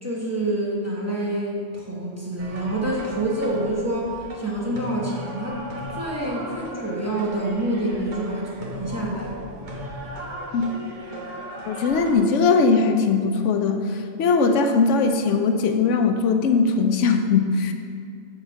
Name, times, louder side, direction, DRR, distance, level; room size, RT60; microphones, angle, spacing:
voice 1, 0.0-5.6 5.9-9.3, right 1 dB, 15° right, -4 dB, 0.9 m, -27 dB
sound 1, 2.4-12.1, right 1 dB, 45° right, 1.0 m, -36 dB
voice 2, 11.7-17.7, left 4 dB, 85° left, 6 dB, 0.9 m, -20 dB
7.1 x 4.0 x 5.6 m, 2.3 s
omnidirectional pair, 1.2 m